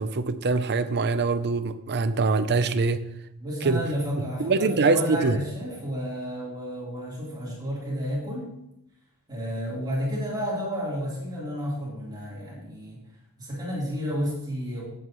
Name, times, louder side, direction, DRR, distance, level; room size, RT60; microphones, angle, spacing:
voice 1, 0.0-3.0 3.6-3.8 4.2-5.4, right 4 dB, 50° right, 12 dB, 0.7 m, -24 dB
voice 2, 3.4-8.5 9.3-13.0 13.4-14.8, equal, 20° right, -6 dB, 3.8 m, -31 dB
16.5 x 8.2 x 3.1 m, 0.84 s
head